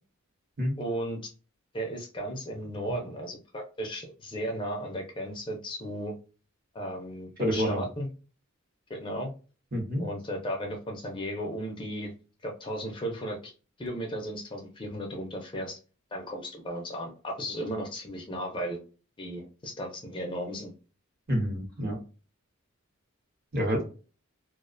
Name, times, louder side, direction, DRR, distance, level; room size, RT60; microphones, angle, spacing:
voice 1, 0.8-1.3 1.7-6.2 6.7-8.1 8.9-9.3 10.0-12.1 12.4-13.5 13.8-15.8 16.1-18.8 19.2-20.7, equal, 25° left, 1 dB, 0.4 m, -35 dB
voice 2, 7.4-7.8 9.7-10.1 21.3-22.0 23.5-23.8, equal, 45° right, 1 dB, 0.8 m, -28 dB
2.4 x 2.1 x 2.5 m, 0.35 s
head